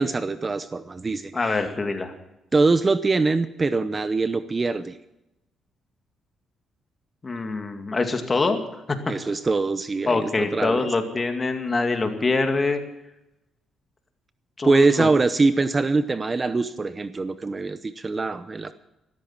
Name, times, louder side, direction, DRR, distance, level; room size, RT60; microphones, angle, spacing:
voice 1, 0.0-1.6 2.5-5.0 9.1-10.9 14.6-18.7, right 3 dB, 30° right, 13 dB, 0.8 m, -23 dB
voice 2, 1.3-2.1 7.2-8.6 10.1-12.8 14.6-15.1, left 3 dB, 30° left, 6 dB, 2.3 m, -24 dB
14.0 x 13.0 x 7.3 m, 0.91 s
cardioid pair, 90°, 0 cm